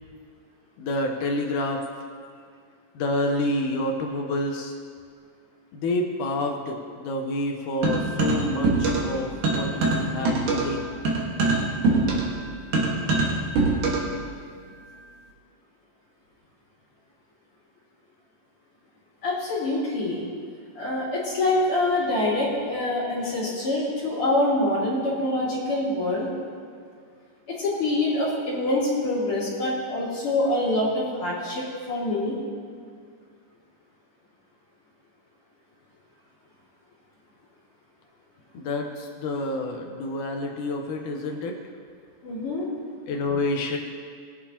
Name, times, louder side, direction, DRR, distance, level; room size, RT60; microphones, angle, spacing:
voice 1, 0.8-1.8 2.9-4.8 5.7-10.9 38.5-41.6 43.1-43.8, left 1 dB, 75° left, 2 dB, 2.4 m, -28 dB
sound 1, 7.8-9.2 9.4-14.2, right 3 dB, 70° right, 3.1 m, -23 dB
voice 2, 19.2-20.2 20.7-26.3 27.5-32.4 42.2-42.7, left 2 dB, 45° left, -7 dB, 3.2 m, -25 dB
21.0 x 9.1 x 2.9 m, 2.1 s
omnidirectional pair, 3.8 m